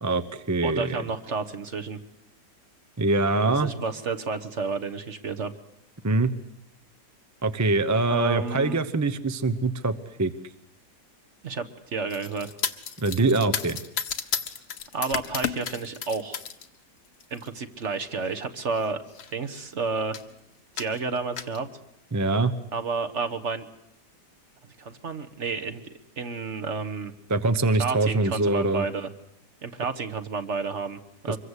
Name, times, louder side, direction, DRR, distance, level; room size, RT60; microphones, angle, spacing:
voice 1, 0.0-1.0 3.0-3.7 6.0-6.3 7.4-10.3 13.0-13.8 22.1-22.5 27.3-28.8 31.3-31.4, right 3 dB, 15° right, 9 dB, 0.5 m, -24 dB
voice 2, 0.6-2.0 3.5-5.5 8.1-8.8 11.4-12.5 14.9-16.4 17.3-19.0 19.3-20.2 20.7-21.7 22.7-23.7 24.8-25.9 26.2-27.1 27.8-29.1 29.6-31.4, right 4 dB, 45° right, 8 dB, 1.4 m, -31 dB
sound 1, 12.1-16.7 17.0-17.5 18.3-18.4 18.8-18.9 19.1-19.7 20.1-20.3 20.8-21.6, left 7 dB, 65° left, 1.7 m, -33 dB
25.0 x 22.5 x 8.2 m, 0.77 s
omnidirectional pair, 1.8 m